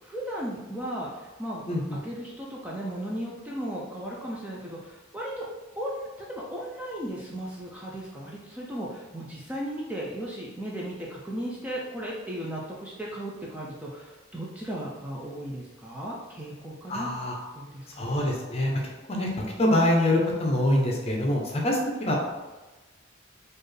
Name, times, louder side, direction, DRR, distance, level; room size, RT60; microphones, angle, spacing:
voice 1, 0.0-1.6 1.9-5.5 5.8-17.1 17.5-18.2, right 1 dB, 5° right, -4 dB, 0.4 m, -36 dB
voice 2, 1.7-2.0 16.9-17.4 18.0-22.2, left 1 dB, 30° left, -1 dB, 0.7 m, -25 dB
4.3 x 2.5 x 3.3 m, 1.2 s
head